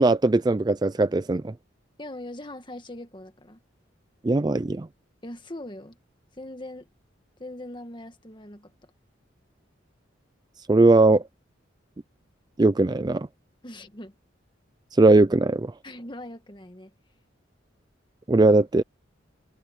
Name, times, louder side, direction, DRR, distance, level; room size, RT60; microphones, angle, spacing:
voice 1, 0.0-1.5 4.2-4.9 10.7-11.2 12.6-13.3 15.0-15.7 18.3-18.8, right 2 dB, 20° right, 0.4 m, -19 dB
voice 2, 2.0-3.6 5.2-6.0 6.4-6.9 7.4-8.9 13.6-14.1 15.8-16.9, left 1 dB, 25° left, 1.7 m, -40 dB
head